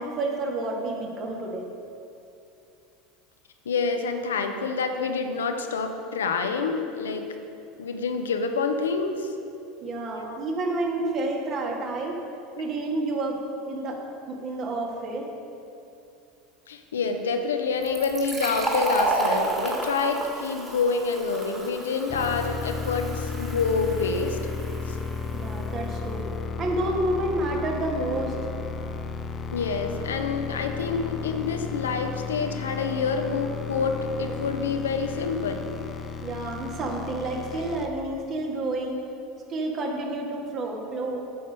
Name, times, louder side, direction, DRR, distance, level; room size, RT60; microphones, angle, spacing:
voice 1, 0.0-1.7 9.8-12.2 12.6-13.4 13.7-15.3 25.3-26.2 26.6-28.4 36.2-39.0 39.5-41.2, right 2 dB, 45° right, 0 dB, 1.9 m, -29 dB
voice 2, 3.7-7.4 7.8-9.3 10.2-10.4 16.7-24.4 24.9-25.0 29.5-35.7, left 4 dB, 80° left, 6 dB, 0.8 m, -27 dB
Fill (with liquid), 17.8-25.2, right 2 dB, 20° right, 2.4 m, -31 dB
sound 1, 22.1-37.9, left 5 dB, 30° left, 0.7 m, -34 dB
9.6 x 6.6 x 5.3 m, 2.7 s
hypercardioid pair, 80°, 0 cm